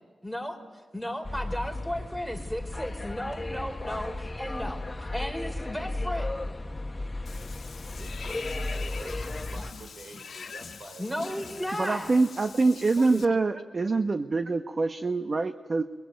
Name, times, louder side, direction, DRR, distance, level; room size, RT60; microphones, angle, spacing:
voice 1, 0.2-0.6 0.9-6.3 11.0-12.1 13.1-13.2, equal, 5° right, 5 dB, 4.3 m, -34 dB
sound 1, 1.2-9.7, left 2 dB, 25° left, 1.4 m, -35 dB
Water / Bathtub (filling or washing), 7.3-13.3, left 5 dB, 75° left, 1.4 m, -43 dB
voice 2, 8.0-11.7 12.1-12.2 13.0-13.6, right 2 dB, 65° right, 5 dB, 4.7 m, -47 dB
voice 3, 11.8-15.8, right 3 dB, 45° right, 8 dB, 1.0 m, -25 dB
23.5 x 21.5 x 9.2 m, 1.4 s
cardioid pair, 60°, 0 cm